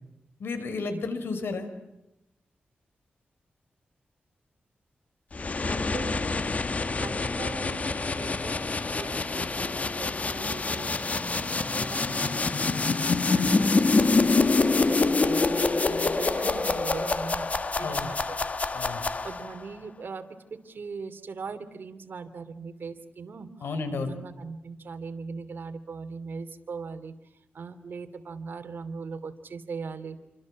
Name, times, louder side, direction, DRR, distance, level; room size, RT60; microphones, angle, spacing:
voice 1, 0.4-1.7 17.8-18.1 18.7-19.1 23.6-24.1, left 4 dB, 85° left, 9 dB, 5.1 m, -32 dB
sound 1, 5.3-19.6, left 3 dB, 40° left, 1.5 m, -26 dB
voice 2, 5.7-6.7 7.0-12.8 13.3-18.4 18.9-27.1 27.5-30.2, right 5 dB, 65° right, 9 dB, 3.0 m, -40 dB
29.0 x 25.0 x 7.5 m, 0.91 s
wide cardioid pair, 95°, 4 cm